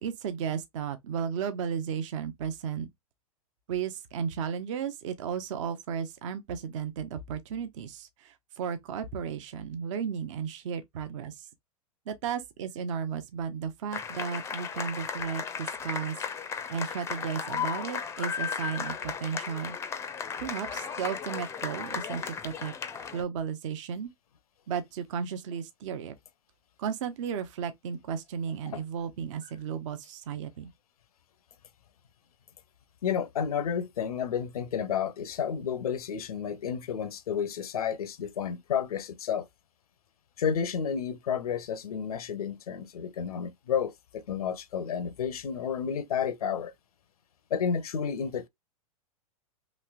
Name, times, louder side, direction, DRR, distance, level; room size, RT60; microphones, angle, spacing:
voice 1, 0.0-2.9 3.7-11.5 12.1-16.2 16.7-19.8 20.4-24.1 24.7-26.1 26.8-30.7, right 7 dB, 55° right, 0.6 m, -34 dB
sound 1, 13.9-23.2, left 7 dB, 15° left, 0.4 m, -35 dB
voice 2, 33.0-39.5 40.4-46.7 47.5-48.5, left 7 dB, 70° left, 0.5 m, -31 dB
3.1 x 2.9 x 2.2 m
figure-of-eight pair, 100°, 19 cm